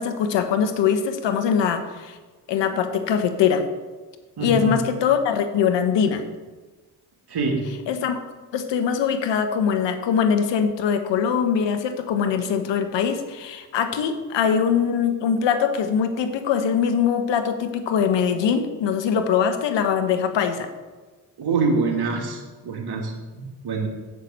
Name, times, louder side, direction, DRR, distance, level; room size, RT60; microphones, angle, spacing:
voice 1, 0.0-2.2 2.5-3.7 4.4-6.3 7.9-8.2 8.5-20.7, left 7 dB, 75° left, 8 dB, 1.2 m, -22 dB
voice 2, 4.4-4.8 7.3-7.6 21.4-23.9, right 4 dB, 60° right, 1 dB, 2.6 m, -25 dB
6.8 x 6.6 x 7.8 m, 1.3 s
supercardioid pair, 50°, 44 cm